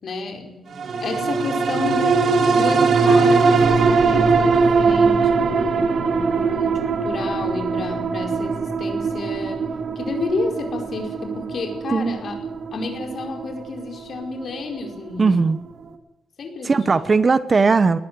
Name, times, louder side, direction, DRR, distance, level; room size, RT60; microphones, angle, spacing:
voice 1, 0.0-9.6 9.9-12.4 12.7-15.6 16.4-17.1, left 3 dB, 50° left, 3 dB, 4.8 m, -30 dB
sound 1, 0.8-15.5 15.9-16.0, right 4 dB, 55° right, 2.1 m, -21 dB
voice 2, 15.2-15.6 16.6-18.0, right 4 dB, 30° right, 14 dB, 0.9 m, -18 dB
19.5 x 15.0 x 9.5 m, 1.0 s
wide cardioid pair, 150°, 0 cm